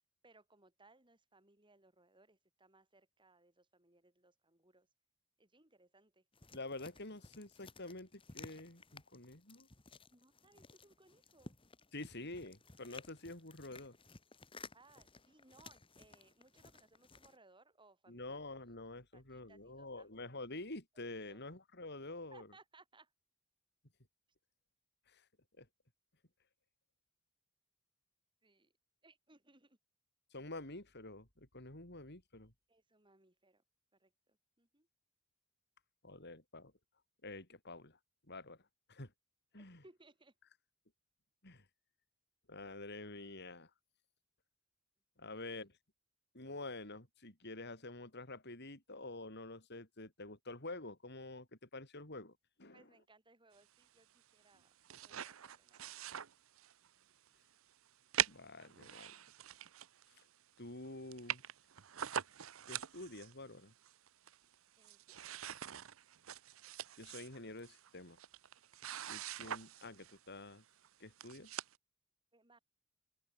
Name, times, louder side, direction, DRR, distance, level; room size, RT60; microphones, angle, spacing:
voice 1, 0.2-4.9 5.4-6.2 10.1-11.5 14.7-18.4 19.1-20.1 21.2-21.4 22.3-23.1 28.4-28.7 29.0-29.8 32.7-33.6 34.0-34.9 39.5-40.3 45.3-45.6 52.7-56.1 64.7-65.2 72.3-72.6, right 2 dB, 20° right, 6.7 m, -66 dB
sound 1, 6.3-17.4, left 3 dB, 25° left, 2.1 m, -57 dB
voice 2, 6.5-9.7 11.9-14.0 18.1-22.5 25.1-25.2 25.6-25.7 30.3-32.5 36.0-36.7 37.2-38.0 38.3-38.6 38.9-39.1 39.5-39.8 41.4-41.6 42.5-43.7 45.2-45.7 46.3-52.9 58.3-59.1 60.6-61.4 62.7-63.7 67.0-68.2 69.1-70.6 71.0-71.5, left 2 dB, 50° left, 5.5 m, -48 dB
sound 2, 54.5-56.9 57.3-57.4 58.1-60.2 60.6-60.7 60.8-60.9 61.1-63.3 63.8-64.5 64.8-70.2 70.8-70.9 71.2-71.8, right 10 dB, 65° right, 0.8 m, -43 dB
open air
head